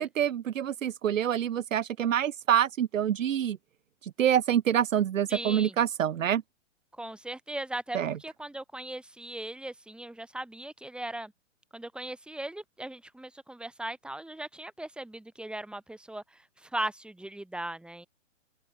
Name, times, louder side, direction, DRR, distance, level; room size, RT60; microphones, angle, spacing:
voice 1, 0.0-3.6 4.2-6.4 7.9-8.1, right 10 dB, 80° right, 0.7 m, -26 dB
voice 2, 5.3-5.8 7.0-11.3 11.7-18.1, right 1 dB, ahead, 4.0 m, -38 dB
open air
hypercardioid pair, 125°, 38 cm